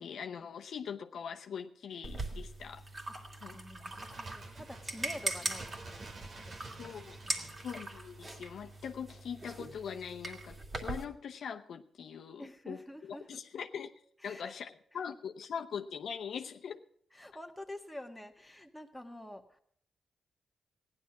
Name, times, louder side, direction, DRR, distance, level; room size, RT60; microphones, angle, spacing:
voice 1, 0.0-2.8 3.4-3.6 6.8-7.2 7.6-13.9 14.2-16.8, left 7 dB, 75° left, 5 dB, 0.8 m, -42 dB
sound 1, 2.0-11.0, right 2 dB, 35° right, 2.4 m, -41 dB
voice 2, 3.1-7.5 12.4-13.4 14.2-14.6 14.9-15.2 17.1-19.6, left 1 dB, 5° left, 3 dB, 1.7 m, -48 dB
Bird, 3.7-9.2 9.5-9.6, right 3 dB, 60° right, 1.5 m, -51 dB
15.5 x 11.0 x 6.0 m, 0.65 s
cardioid pair, 75°, 0 cm